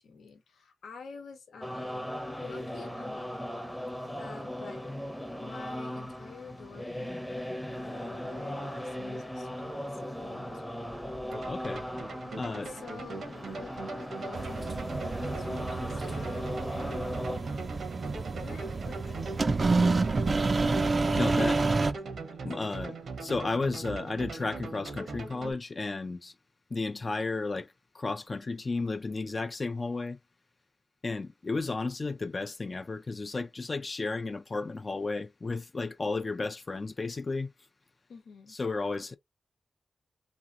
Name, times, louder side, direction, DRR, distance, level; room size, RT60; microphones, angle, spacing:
voice 1, 0.0-2.1 2.4-3.6 4.2-4.9 5.4-7.1 7.8-10.9 12.6-17.7 18.3-20.3 22.2-22.3 22.7-22.8 38.1-38.6, left 5 dB, 85° left, 1.0 m, -49 dB
sound 1, 1.6-17.4, equal, 5° left, 0.7 m, -38 dB
sound 2, 11.3-25.5, right 3 dB, 75° right, 0.9 m, -40 dB
voice 2, 11.4-11.9 12.3-12.7 21.1-21.6 22.4-22.9 23.2-26.3 26.7-30.2 31.0-37.5 38.5-39.2, left 3 dB, 45° left, 0.4 m, -33 dB
sound 3, 14.3-21.9, right 3 dB, 45° right, 0.4 m, -29 dB
3.0 x 2.7 x 2.4 m
cardioid pair, 50°, 0 cm